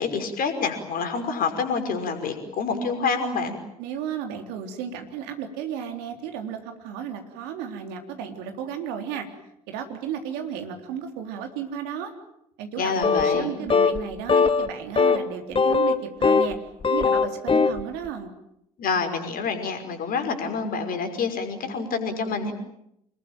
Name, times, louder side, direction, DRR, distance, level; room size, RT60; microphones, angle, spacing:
voice 1, 0.0-3.6 12.8-13.5 18.8-22.5, left 5 dB, 50° left, 6 dB, 5.7 m, -27 dB
voice 2, 3.8-9.3 9.7-12.1 12.6-16.6 16.9-18.3, right 8 dB, 65° right, 5 dB, 3.7 m, -33 dB
sound 1, 13.0-13.5 13.7-14.0 14.3-14.7 15.0-15.2 15.6-16.5 16.8-17.8, left 5 dB, 30° left, 1.9 m, -20 dB
26.5 x 21.5 x 9.1 m, 0.78 s
figure-of-eight pair, 55°, 18 cm